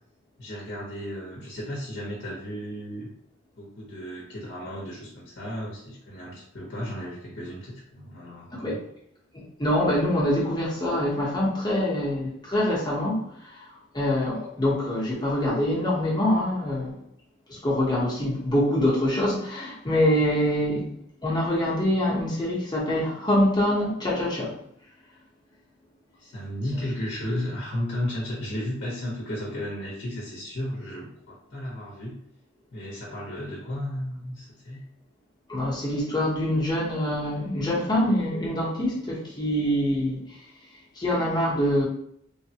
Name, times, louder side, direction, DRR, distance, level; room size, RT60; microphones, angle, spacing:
voice 1, 0.4-3.1 3.6-8.8 26.2-32.2 32.7-34.8, left 1 dB, 55° left, -5 dB, 0.9 m, -34 dB
voice 2, 9.3-13.3 13.9-17.0 17.5-20.9 21.2-24.6 35.5-40.2 41.0-41.9, left 1 dB, 20° left, -6 dB, 0.9 m, -25 dB
3.2 x 2.1 x 2.8 m, 0.71 s
head